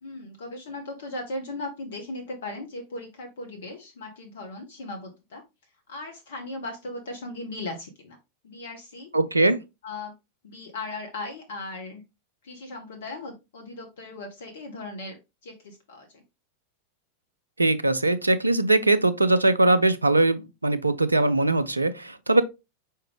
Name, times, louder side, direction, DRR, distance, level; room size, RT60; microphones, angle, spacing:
voice 1, 0.0-5.4 5.9-8.2 8.4-9.1 9.8-10.1 10.4-12.0 12.4-15.2 15.4-16.2, left 2 dB, 60° left, 0.8 m, -37 dB
voice 2, 9.1-9.6 17.6-22.4, right 2 dB, 80° right, 0.4 m, -21 dB
4.8 x 3.2 x 3.2 m
figure-of-eight pair, 90°, 0 cm